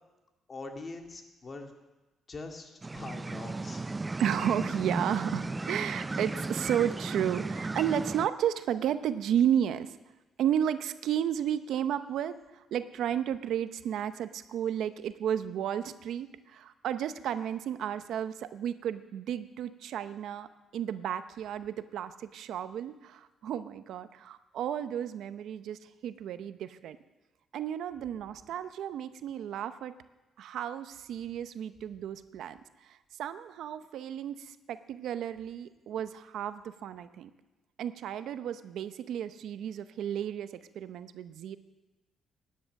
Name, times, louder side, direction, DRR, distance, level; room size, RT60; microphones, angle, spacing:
voice 1, 0.5-1.7 2.3-3.8, left 3 dB, 35° left, 3 dB, 2.2 m, -43 dB
sound 1, 2.8-8.3, right 3 dB, 20° right, 0.4 m, -35 dB
voice 2, 4.2-9.9 10.4-20.5 20.7-27.0 27.5-29.9 30.4-37.3 37.8-41.6, right 9 dB, 75° right, 11 dB, 0.7 m, -33 dB
16.5 x 10.5 x 6.5 m, 1.1 s
cardioid pair, 90°, 0 cm